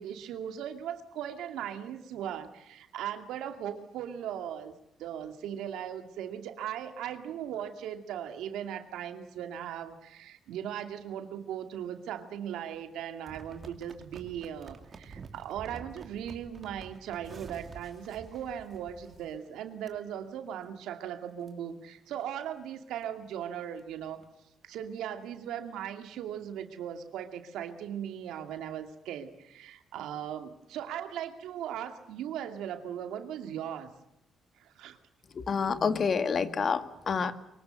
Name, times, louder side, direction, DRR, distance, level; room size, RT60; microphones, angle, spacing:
voice 1, 0.0-24.2 24.6-33.9 34.6-35.0, right 9 dB, 85° right, 7 dB, 2.5 m, -38 dB
sound 1, 13.3-19.5 19.9-20.0 20.5-20.7 21.1-21.2 21.4-21.5 22.1-22.3 22.7-22.8 23.0-23.1 23.4-24.3 24.8-24.9, right 5 dB, 40° right, 2.8 m, -49 dB
voice 2, 35.3-37.3, left 5 dB, 45° left, 11 dB, 1.9 m, -28 dB
24.0 x 23.0 x 7.9 m, 0.82 s
cardioid pair, 90°, 0 cm